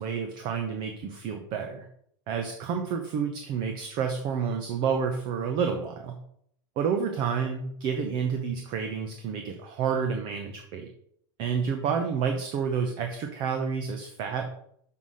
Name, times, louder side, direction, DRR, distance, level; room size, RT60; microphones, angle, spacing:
voice 1, 0.0-1.9 2.3-6.2 6.8-10.9 11.4-14.4, right 6 dB, 40° right, 5 dB, 0.9 m, -29 dB
6.0 x 5.7 x 6.4 m, 0.69 s
supercardioid pair, 165°, 13 cm